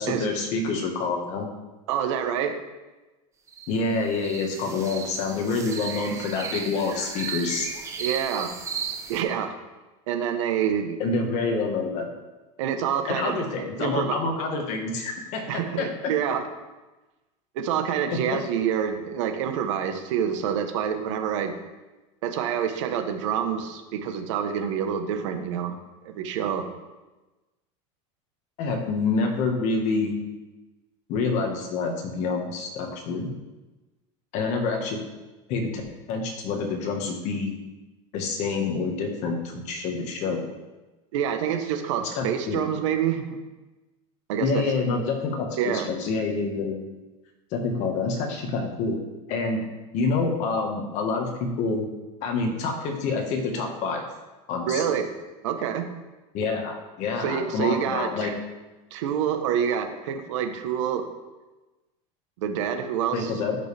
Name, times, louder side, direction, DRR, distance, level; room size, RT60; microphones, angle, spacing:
voice 1, 0.0-1.5 3.7-7.7 11.0-12.1 13.1-15.9 18.1-18.2 28.6-30.2 31.1-33.3 34.3-35.0 35.5-35.8 36.1-37.6 38.1-40.5 42.0-42.6 44.4-46.9 47.5-49.0 49.3-49.6 49.9-51.9 52.2-54.0 54.5-54.8 56.3-58.3 63.1-63.6, left 4 dB, 50° left, 2 dB, 1.6 m, -27 dB
voice 2, 1.9-2.6 8.0-8.5 9.1-9.5 10.1-11.0 12.6-13.4 13.7-14.2 15.5-16.4 17.5-21.5 22.2-25.8 26.0-26.7 41.1-43.2 44.3-44.6 45.6-45.9 54.6-55.0 55.4-55.9 57.2-58.3 58.9-61.0 62.4-63.3, right 8 dB, 80° right, 7 dB, 1.1 m, -27 dB
sound 1, 3.5-9.2, right 6 dB, 20° right, 0.7 m, -35 dB
11.5 x 5.3 x 3.4 m, 1.1 s
supercardioid pair, 145°, 16 cm